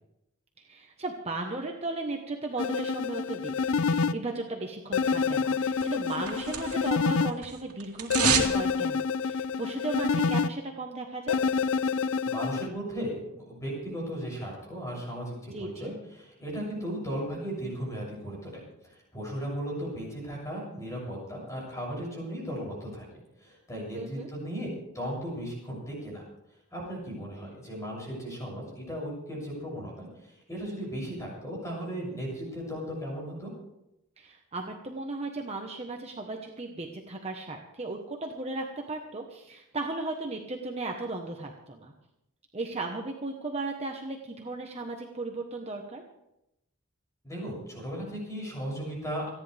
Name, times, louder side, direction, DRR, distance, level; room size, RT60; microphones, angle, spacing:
voice 1, 0.6-11.4 15.5-15.9 23.9-24.3 34.2-41.9 42.5-46.0, right 2 dB, 30° right, 2 dB, 1.2 m, -36 dB
sound 1, 2.6-4.1 4.9-7.3 8.1-10.5 11.3-12.7, left 5 dB, 70° left, 0.5 m, -27 dB
sound 2, 5.8-7.0 7.3-8.6 8.9-9.0, right 7 dB, 80° right, 2.5 m, -28 dB
voice 2, 12.3-23.1 23.4-24.7 24.9-26.2 26.7-33.5 47.2-49.3, equal, 15° left, -3 dB, 7.3 m, -36 dB
29.0 x 10.5 x 3.5 m, 0.87 s
head